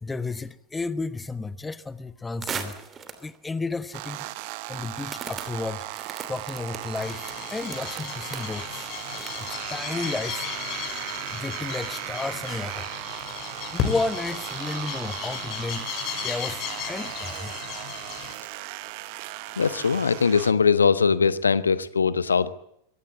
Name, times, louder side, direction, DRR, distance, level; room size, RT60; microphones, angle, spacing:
voice 1, 0.0-2.8 3.2-4.3 4.7-5.9 6.3-8.9 9.4-10.4 11.3-12.9 13.7-17.5, left 3 dB, 10° left, 15 dB, 1.1 m, -32 dB
sound 1, 2.4-3.4 4.0-4.1 5.1-9.6, right 6 dB, 25° right, 2.9 m, -38 dB
sound 2, 3.9-20.5, right 19 dB, 45° right, 1.1 m, -37 dB
sound 3, 7.0-18.3, left 9 dB, 35° left, 5.7 m, -35 dB
voice 2, 19.6-22.5, left 5 dB, 75° left, 15 dB, 1.2 m, -21 dB
24.0 x 17.5 x 8.5 m, 0.77 s
figure-of-eight pair, 90°, 0 cm